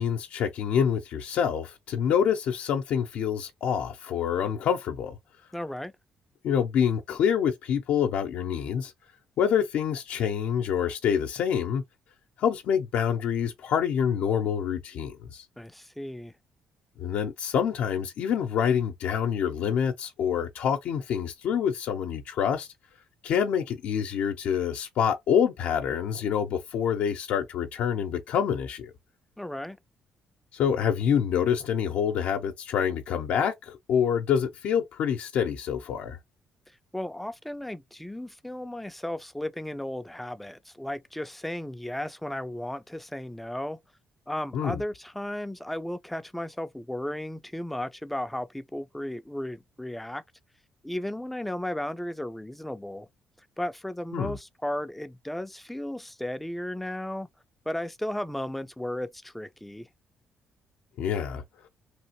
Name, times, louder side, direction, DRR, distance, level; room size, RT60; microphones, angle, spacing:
voice 1, 0.0-5.2 6.4-8.9 9.4-11.8 12.4-15.5 17.0-22.7 23.2-28.9 30.5-36.2 44.5-44.8 54.1-54.4 61.0-61.4, left 8 dB, 75° left, 0.5 m, -26 dB
voice 2, 5.5-5.9 15.6-16.3 29.4-29.8 36.9-43.8 44.3-50.2 50.8-53.1 53.6-57.3 57.7-59.9, left 1 dB, 5° left, 0.4 m, -35 dB
3.1 x 2.5 x 2.9 m
cardioid pair, 80°, 2 cm